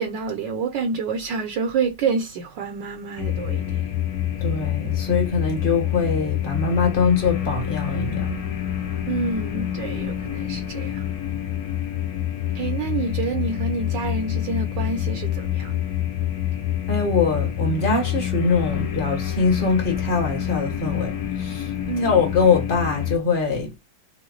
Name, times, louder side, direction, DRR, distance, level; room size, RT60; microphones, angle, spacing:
voice 1, 0.0-3.9 9.1-11.1 12.5-15.8 21.9-22.1, right 4 dB, 65° right, 1.3 m, -28 dB
sound 1, 3.2-23.1, left 11 dB, 80° left, 1.9 m, -27 dB
voice 2, 4.4-8.4 16.9-21.7 22.0-23.8, left 5 dB, 30° left, 1.3 m, -22 dB
6.1 x 2.3 x 3.8 m
omnidirectional pair, 2.3 m